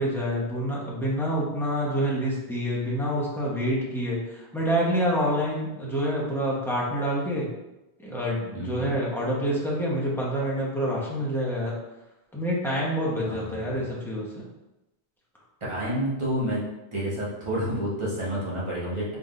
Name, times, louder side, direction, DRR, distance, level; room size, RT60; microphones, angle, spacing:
voice 1, 0.0-7.5 8.0-11.7 12.3-14.5, equal, ahead, -6 dB, 0.8 m, -27 dB
voice 2, 8.5-9.0 13.2-13.3 13.7-13.8 15.7-16.6 16.9-19.2, equal, 30° right, -7 dB, 1.2 m, -29 dB
4.0 x 3.6 x 2.5 m, 0.97 s
omnidirectional pair, 1.1 m